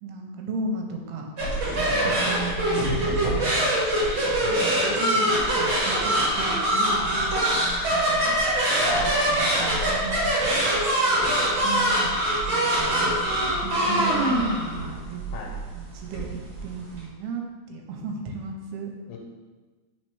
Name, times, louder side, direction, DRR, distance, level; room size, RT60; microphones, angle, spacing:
voice 1, 0.0-1.3 1.7-3.7 4.2-8.6 8.9-10.6 11.6-15.2 15.7-18.9, right 4 dB, 90° right, 2 dB, 2.6 m, -35 dB
sound 1, 1.4-17.0, right 1 dB, 50° right, 1.6 m, -23 dB
voice 2, 1.9-2.5 4.4-5.4 8.8-9.2 10.9-11.8 12.6-13.2 13.5-14.2 15.3-15.5 19.1-19.2, left 5 dB, 85° left, 0 dB, 2.7 m, -40 dB
5.1 x 4.3 x 4.7 m, 1.3 s
omnidirectional pair, 4.5 m